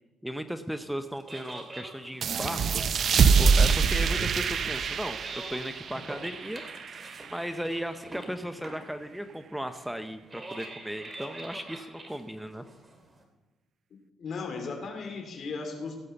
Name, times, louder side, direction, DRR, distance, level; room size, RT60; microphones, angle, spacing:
voice 1, 0.2-2.8 3.4-6.6 7.3-12.6, equal, 5° right, 9 dB, 0.7 m, -36 dB
sound 1, 1.0-13.2, right 2 dB, 25° right, 2.6 m, -45 dB
sound 2, 2.2-7.4, right 5 dB, 55° right, 0.6 m, -25 dB
voice 2, 14.2-16.0, left 4 dB, 55° left, 4 dB, 3.0 m, -36 dB
16.5 x 5.6 x 6.9 m, 1.3 s
cardioid pair, 90°, 0 cm